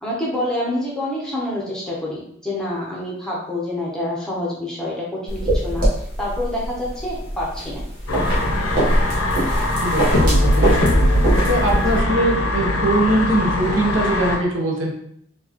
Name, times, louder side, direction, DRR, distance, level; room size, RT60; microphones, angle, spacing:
voice 1, 0.0-7.8, left 1 dB, 5° left, -5 dB, 0.8 m, -27 dB
sound 1, 5.3-12.0, right 1 dB, 40° right, 1.1 m, -23 dB
sound 2, 8.1-14.4, left 1 dB, 85° left, 0.8 m, -20 dB
voice 2, 9.8-10.8 11.5-14.9, right 1 dB, 60° right, -1 dB, 0.9 m, -21 dB
4.4 x 2.4 x 3.0 m, 0.69 s
head